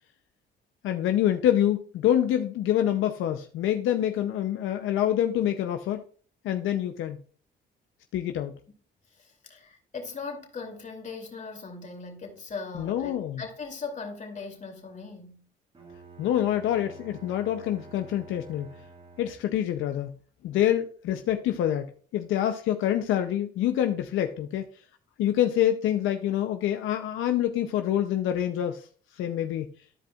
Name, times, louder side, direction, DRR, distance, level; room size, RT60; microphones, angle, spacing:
voice 1, 0.8-6.0 6.4-7.2 8.1-8.6 12.7-13.4 16.2-18.7 19.2-20.1 20.4-24.6 25.2-28.9 29.1-29.7, left 11 dB, 85° left, 0.6 m, -26 dB
voice 2, 9.1-15.4, left 4 dB, 40° left, 2.7 m, -39 dB
Bowed string instrument, 15.7-19.7, right 3 dB, 30° right, 1.8 m, -48 dB
13.5 x 5.0 x 2.4 m
cardioid pair, 90°, 20 cm